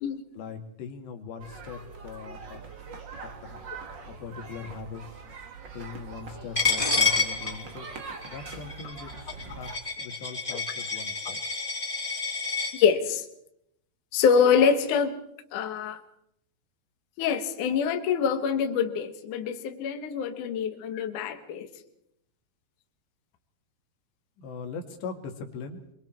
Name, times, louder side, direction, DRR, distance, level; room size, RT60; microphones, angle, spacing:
voice 1, 0.3-2.6 4.1-5.0 5.7-7.9 8.3-11.4 24.4-25.8, left 5 dB, 90° left, 4 dB, 4.2 m, -40 dB
sound 1, 1.4-9.8, right 4 dB, 40° right, 1.7 m, -43 dB
Coin (dropping), 6.5-12.7, left 4 dB, 15° left, 2.7 m, -29 dB
voice 2, 12.7-13.2 14.1-15.2 15.5-16.0 17.2-21.7, left 7 dB, 60° left, 6 dB, 2.5 m, -25 dB
25.0 x 23.0 x 4.5 m, 0.77 s
omnidirectional pair, 4.8 m